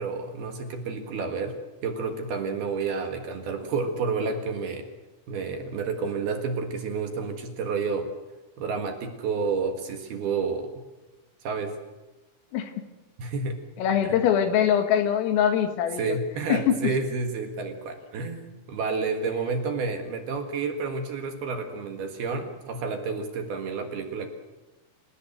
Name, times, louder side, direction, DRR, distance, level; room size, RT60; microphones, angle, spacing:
voice 1, 0.0-4.9 5.3-8.1 8.6-10.7 11.4-11.8 13.2-13.6 14.0-14.2 16.0-18.4 18.7-24.3, right 4 dB, 60° right, 5 dB, 3.2 m, -30 dB
voice 2, 13.8-16.2 16.5-16.8, left 9 dB, 80° left, 7 dB, 4.4 m, -23 dB
28.5 x 17.0 x 7.9 m, 1.1 s
omnidirectional pair, 5.9 m